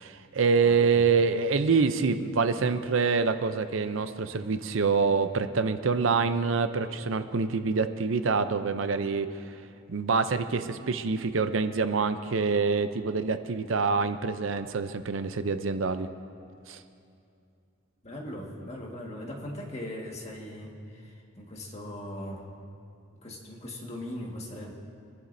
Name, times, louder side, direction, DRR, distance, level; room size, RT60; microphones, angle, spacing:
voice 1, 0.0-9.3 9.9-16.1 16.7-16.8, right 4 dB, 75° right, 10 dB, 0.6 m, -26 dB
voice 2, 0.6-1.0 18.0-22.6 23.2-24.7, left 1 dB, 35° left, -1 dB, 1.8 m, -39 dB
26.0 x 11.5 x 2.7 m, 2.6 s
head